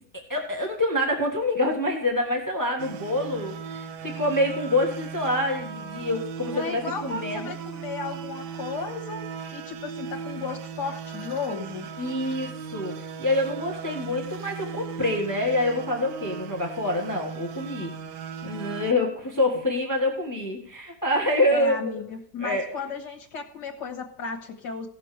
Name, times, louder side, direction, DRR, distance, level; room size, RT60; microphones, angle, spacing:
voice 1, 0.3-7.5 12.0-17.9 18.4-21.8 22.4-22.9, left 1 dB, 10° left, 1 dB, 1.3 m, -26 dB
sound 1, 2.8-18.9, right 6 dB, 90° right, 1.3 m, -37 dB
voice 2, 6.5-9.2 9.5-11.9 21.5-24.9, left 4 dB, 80° left, -1 dB, 1.8 m, -34 dB
17.5 x 6.8 x 3.3 m, 0.64 s
omnidirectional pair, 1.8 m